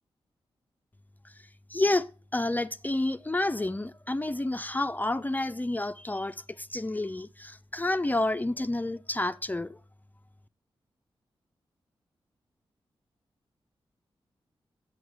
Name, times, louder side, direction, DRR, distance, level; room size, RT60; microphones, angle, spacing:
voice 1, 1.7-9.8, left 2 dB, 15° left, 0.5 m, -29 dB
9.5 x 8.0 x 4.8 m
cardioid pair, 65°, 10 cm